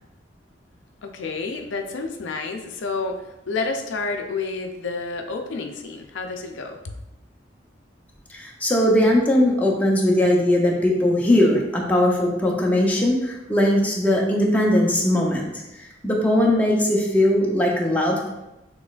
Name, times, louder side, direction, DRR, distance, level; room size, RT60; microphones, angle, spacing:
voice 1, 1.0-6.8, left 4 dB, 80° left, 4 dB, 0.5 m, -29 dB
voice 2, 8.3-15.5 15.8-18.3, left 1 dB, 10° left, -2 dB, 0.7 m, -20 dB
6.0 x 3.1 x 2.4 m, 0.93 s
head